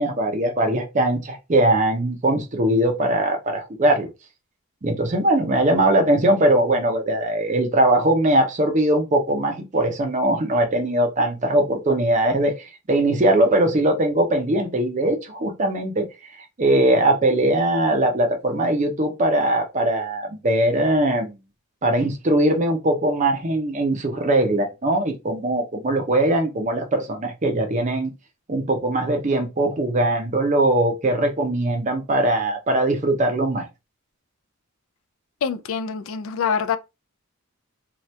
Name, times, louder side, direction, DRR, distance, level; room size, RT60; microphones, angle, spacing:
voice 1, 0.0-4.1 4.8-16.1 16.3-21.4 21.8-28.1 28.5-33.7, right 1 dB, 35° right, 0.6 m, -21 dB
voice 2, 35.4-36.8, left 6 dB, 60° left, 0.4 m, -25 dB
2.8 x 2.3 x 3.2 m
head